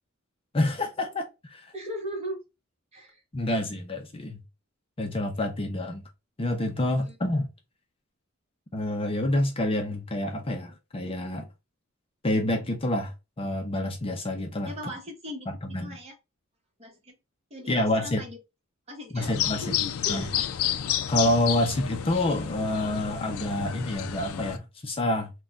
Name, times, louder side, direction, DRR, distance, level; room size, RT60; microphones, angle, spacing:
voice 1, 0.5-1.7 3.3-4.4 5.0-6.0 6.4-7.5 8.7-11.5 12.2-14.9 15.5-16.0 17.7-18.2 19.1-19.7 20.1-20.3 21.1-25.3, left 1 dB, 25° left, 0.5 m, -28 dB
voice 2, 1.7-2.4 2.9-3.2 7.0-7.2 14.6-16.2 16.8-17.1 17.5-18.4 18.9-19.3 19.6-20.5, equal, 30° right, 1.1 m, -39 dB
sound 1, 19.2-24.6, left 10 dB, 80° left, 0.4 m, -31 dB
3.8 x 2.3 x 2.3 m
head